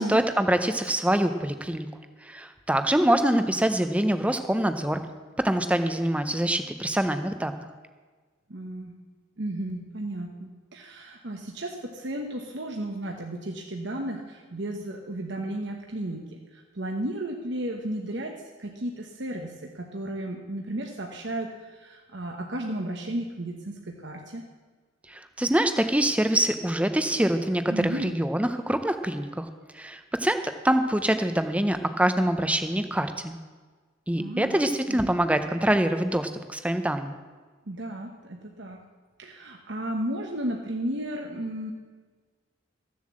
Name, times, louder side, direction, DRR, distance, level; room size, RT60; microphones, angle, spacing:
voice 1, 0.0-1.9 2.2-5.0 5.4-7.6 25.1-29.5 29.7-33.3 34.1-37.2, right 1 dB, 5° right, 8 dB, 0.7 m, -25 dB
voice 2, 8.5-8.9 9.4-18.3 18.6-24.4 27.7-28.2 34.2-34.6 34.9-35.1 37.7-38.8 39.2-41.7, right 1 dB, 60° right, 1 dB, 1.1 m, -34 dB
14.5 x 7.5 x 7.5 m, 1.4 s
head